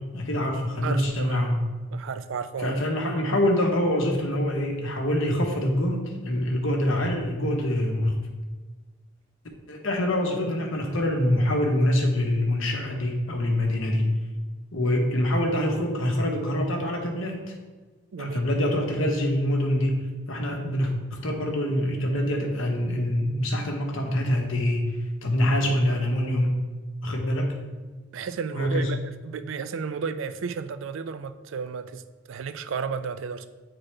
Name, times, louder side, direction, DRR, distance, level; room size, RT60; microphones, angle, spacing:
voice 1, 0.0-1.6 2.6-8.1 9.7-14.1 14.7-17.4 18.2-24.8 25.2-26.5 27.0-27.5 28.5-28.9, left 1 dB, 85° left, 1.1 m, -25 dB
voice 2, 0.8-1.4 1.9-2.8 18.1-18.5 28.1-32.0 32.3-33.5, right 5 dB, 80° right, 0.4 m, -33 dB
8.7 x 4.0 x 3.3 m
head